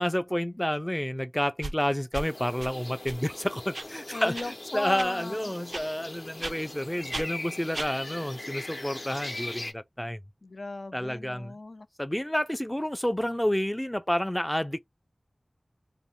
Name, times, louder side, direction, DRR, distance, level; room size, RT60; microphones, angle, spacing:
voice 1, 0.0-4.3 4.7-10.2 10.9-11.5 12.0-14.8, equal, 10° left, 0.3 m, -29 dB
sound 1, 1.6-1.7 2.1-2.3 2.6-2.7 3.0-3.2 3.7-3.9 4.3-4.5 5.0-5.1 5.7-5.9 6.4-6.5 7.1-7.3 7.7-7.9, right 2 dB, 65° right, 0.3 m, -35 dB
sound 2, 2.2-9.7, left 2 dB, 65° left, 0.8 m, -40 dB
voice 2, 4.1-5.5 10.4-11.9, left 2 dB, 80° left, 0.4 m, -37 dB
2.6 x 2.0 x 3.0 m
wide cardioid pair, 50°, 0 cm